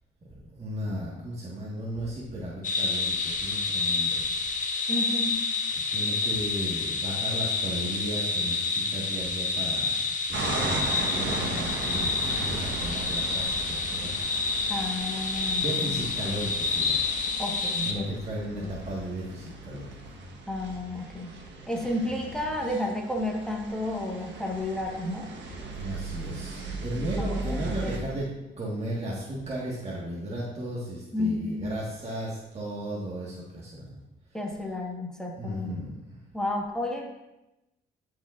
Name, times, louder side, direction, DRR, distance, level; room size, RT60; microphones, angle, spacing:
voice 1, 0.3-4.4 5.7-14.1 15.6-17.0 17.8-20.0 25.7-28.3 28.6-34.0 35.4-35.9, right 1 dB, 30° right, -6 dB, 1.6 m, -35 dB
sound 1, 2.6-17.9, left 4 dB, 40° left, 1.2 m, -29 dB
voice 2, 4.9-5.3 14.7-16.0 17.4-18.1 18.5-18.8 20.5-21.3 21.7-25.3 27.2-28.0 31.1-31.7 34.3-35.8 36.3-37.1, left 1 dB, 5° left, -1 dB, 1.4 m, -32 dB
sound 2, 10.3-28.0, right 2 dB, 65° right, 1.3 m, -37 dB
14.5 x 4.8 x 2.5 m, 0.97 s
cardioid pair, 90°, 20 cm